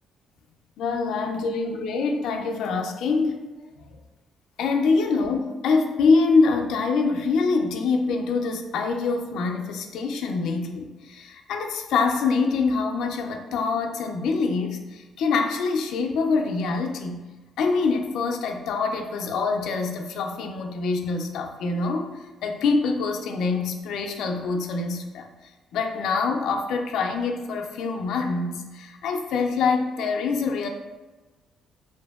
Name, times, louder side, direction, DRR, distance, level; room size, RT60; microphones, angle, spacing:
voice 1, 0.8-4.0 4.6-17.2 17.6-25.3 25.7-30.7, left 4 dB, 80° left, 4 dB, 0.3 m, -25 dB
2.7 x 2.5 x 2.3 m, 1.2 s
cardioid pair, 95°, 0 cm